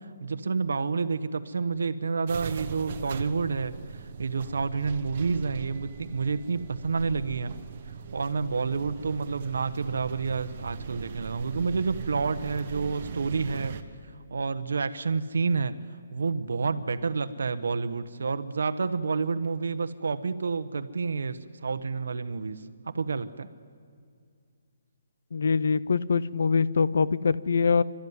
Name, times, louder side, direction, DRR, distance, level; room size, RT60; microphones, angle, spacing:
voice 1, 0.2-7.5 8.1-13.7 14.3-15.8 16.1-23.5, right 4 dB, 70° right, 11 dB, 1.0 m, -29 dB
sound 1, 2.3-13.8, right 6 dB, 30° right, 1.0 m, -40 dB
voice 2, 25.3-27.8, left 5 dB, 55° left, 18 dB, 0.6 m, -24 dB
28.5 x 13.0 x 9.6 m, 2.2 s
hypercardioid pair, 180°, 0 cm